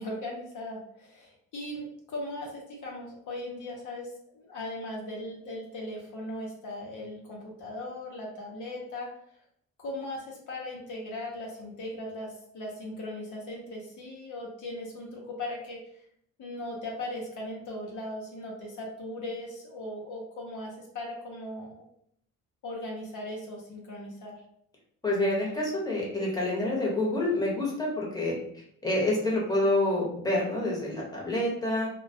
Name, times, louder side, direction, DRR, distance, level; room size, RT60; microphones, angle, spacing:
voice 1, 0.0-9.1 9.8-15.8 16.4-21.8 22.6-24.4, left 1 dB, 65° left, -2 dB, 0.7 m, -38 dB
voice 2, 25.0-31.9, left 1 dB, 10° left, -4 dB, 0.9 m, -28 dB
2.2 x 2.2 x 2.6 m, 0.70 s
cardioid pair, 90°, 33 cm